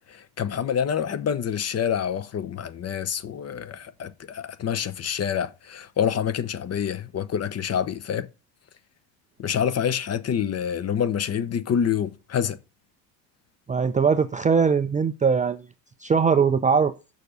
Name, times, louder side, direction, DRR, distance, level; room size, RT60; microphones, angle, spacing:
voice 1, 0.1-8.3 9.4-12.6, left 8 dB, 30° left, 0.8 m, -27 dB
voice 2, 13.7-15.6 16.0-16.9, right 6 dB, 15° right, 0.4 m, -21 dB
6.7 x 5.2 x 6.7 m
hypercardioid pair, 85°, 50 cm